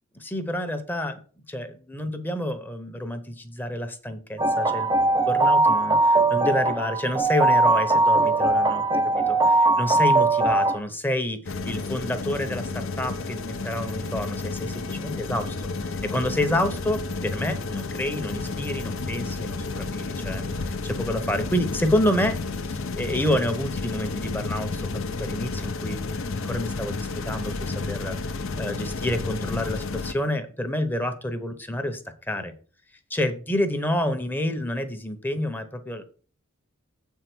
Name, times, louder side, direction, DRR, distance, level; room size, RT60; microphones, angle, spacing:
voice 1, 0.2-1.2 1.5-4.9 5.2-22.4 22.7-32.0 32.3-32.5 33.1-36.0, left 1 dB, 10° left, 8 dB, 0.9 m, -29 dB
sound 1, 4.4-10.8, right 2 dB, 20° right, 0.5 m, -20 dB
sound 2, 11.5-30.1, left 3 dB, 65° left, 0.7 m, -31 dB
7.5 x 4.6 x 6.1 m, 0.40 s
head